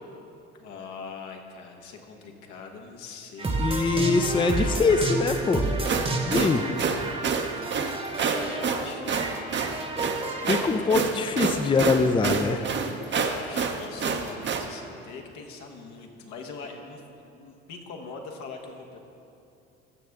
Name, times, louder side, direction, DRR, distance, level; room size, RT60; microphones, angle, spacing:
voice 1, 0.6-3.7 4.7-5.0 8.3-9.2 10.0-10.9 13.1-19.0, left 4 dB, 75° left, 2 dB, 1.3 m, -42 dB
sound 1, 3.4-10.6, right 2 dB, 20° right, 1.0 m, -31 dB
voice 2, 3.6-5.7 6.3-6.7 10.5-12.7, left 4 dB, 15° left, 7 dB, 0.5 m, -23 dB
sound 2, 5.7-14.7, right 5 dB, 40° right, 0.8 m, -28 dB
15.0 x 6.5 x 3.5 m, 2.7 s
supercardioid pair, 80°, 30 cm